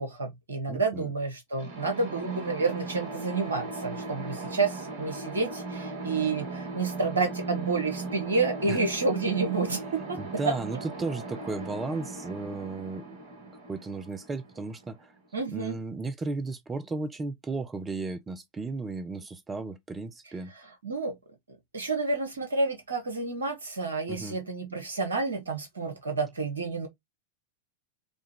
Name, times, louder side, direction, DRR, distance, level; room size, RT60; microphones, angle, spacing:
voice 1, 0.0-10.2 10.4-10.5 15.3-15.8 20.8-21.1 21.7-26.9, right 3 dB, 75° right, 1.3 m, -29 dB
voice 2, 0.7-1.1 8.7-8.8 10.2-13.2 13.7-15.1 15.5-20.5 24.1-24.4, right 3 dB, 15° right, 0.6 m, -35 dB
sound 1, 1.6-15.3, right 3 dB, 55° right, 1.4 m, -38 dB
5.0 x 2.4 x 3.5 m
figure-of-eight pair, 90°, 0 cm